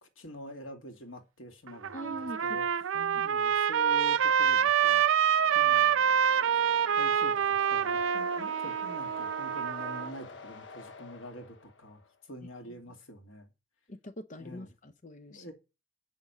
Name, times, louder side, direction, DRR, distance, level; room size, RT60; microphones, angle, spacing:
voice 1, 0.0-2.2 2.4-2.7 3.2-5.0 5.5-6.0 7.0-13.5 14.4-14.7 15.3-15.5, left 1 dB, 85° left, 2.4 m, -46 dB
Trumpet, 1.7-10.1, right 8 dB, 85° right, 0.5 m, -26 dB
voice 2, 1.9-2.6 2.9-3.3 13.9-15.5, equal, 40° left, 0.7 m, -43 dB
sound 1, 5.1-12.1, left 3 dB, 65° left, 0.9 m, -48 dB
8.5 x 6.5 x 7.1 m
head